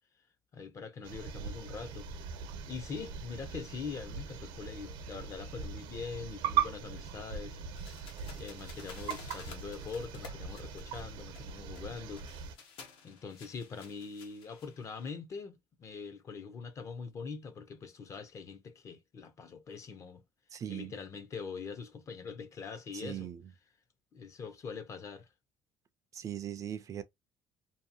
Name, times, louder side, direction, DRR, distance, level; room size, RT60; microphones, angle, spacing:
voice 1, 0.5-2.1 2.7-7.6 8.4-12.2 12.6-12.8 13.0-20.2 20.7-23.3 24.1-25.3, left 5 dB, 35° left, 0.5 m, -43 dB
sound 1, 1.0-12.5, right 7 dB, 85° right, 0.7 m, -39 dB
sound 2, 7.8-15.1, left 5 dB, 80° left, 0.9 m, -53 dB
voice 2, 20.5-20.9 22.9-23.4 26.1-27.0, right 10 dB, 40° right, 0.4 m, -39 dB
2.7 x 2.3 x 2.6 m
cardioid pair, 140°, 9 cm